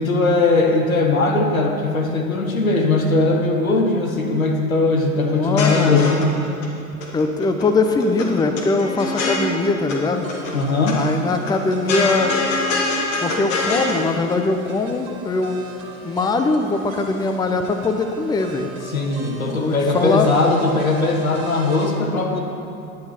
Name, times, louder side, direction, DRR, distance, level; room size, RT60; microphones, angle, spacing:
voice 1, 0.0-6.4 10.5-11.0 18.8-22.4, left 3 dB, 85° left, 1 dB, 1.3 m, -19 dB
voice 2, 5.2-6.1 7.1-10.3 10.9-12.3 13.2-15.6 16.0-18.7 19.5-20.3, left 3 dB, 10° left, 6 dB, 0.6 m, -21 dB
sound 1, 5.4-6.7 7.0-7.7 7.9-10.0 10.3-10.9 11.3-14.0, left 3 dB, 70° left, 1.9 m, -24 dB
sound 2, 10.1-21.9, right 4 dB, 65° right, 2.0 m, -39 dB
10.5 x 9.8 x 4.3 m, 2.6 s
figure-of-eight pair, 80°, 40 cm